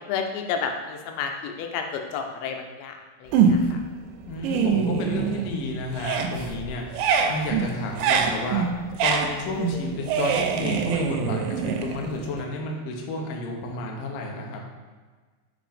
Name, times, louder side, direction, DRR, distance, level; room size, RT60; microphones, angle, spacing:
voice 1, 0.1-3.8, left 6 dB, 90° left, 4 dB, 3.0 m, -31 dB
sound 1, 3.3-3.9 4.3-5.6 5.9-12.4, right 6 dB, 85° right, 2.7 m, -24 dB
voice 2, 4.3-6.8 7.3-8.7 9.0-14.6, left 3 dB, 75° left, 0 dB, 2.2 m, -31 dB
7.9 x 3.2 x 5.1 m, 1.4 s
omnidirectional pair, 5.0 m